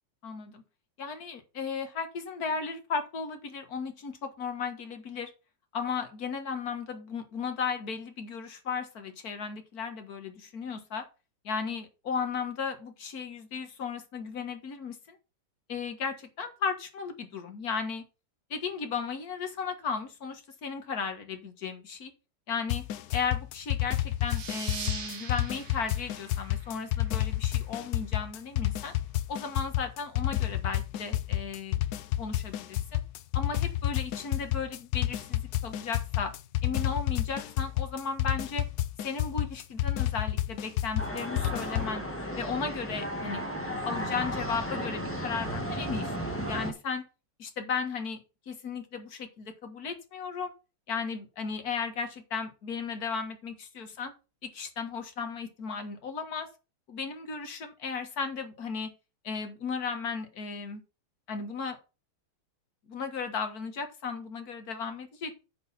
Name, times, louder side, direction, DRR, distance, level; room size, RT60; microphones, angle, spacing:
voice 1, 0.2-0.6 1.0-5.3 5.7-11.0 11.4-15.2 15.7-18.0 18.5-22.1 22.5-22.8 23.1-28.9 29.3-31.8 32.2-33.0 33.3-36.3 36.6-38.7 39.0-42.0 42.4-43.4 43.9-47.0 47.4-48.2 48.5-50.5 50.9-54.1 54.4-56.5 56.9-58.9 59.2-60.8 61.3-61.8 62.9-65.3, left 5 dB, 45° left, 6 dB, 1.8 m, -35 dB
sound 1, 22.7-42.0, left 14 dB, 85° left, 0.8 m, -30 dB
sound 2, 24.3-27.5, right 6 dB, 60° right, 1.9 m, -42 dB
sound 3, 41.0-46.7, equal, 5° left, 1.5 m, -34 dB
10.0 x 6.4 x 4.3 m, 0.31 s
omnidirectional pair, 2.4 m